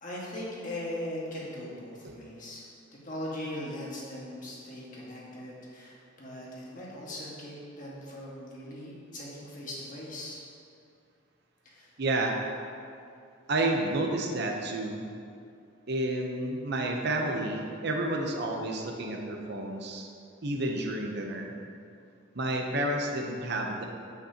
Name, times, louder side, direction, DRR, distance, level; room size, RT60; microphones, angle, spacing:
voice 1, 0.0-2.7 3.0-10.4 11.6-11.9, left 1 dB, 40° left, -5 dB, 1.7 m, -39 dB
voice 2, 12.0-12.4 13.5-15.0 15.9-20.1 20.4-21.5 22.3-23.8, right 2 dB, 55° right, 1 dB, 0.8 m, -30 dB
8.3 x 8.2 x 2.9 m, 2.4 s
head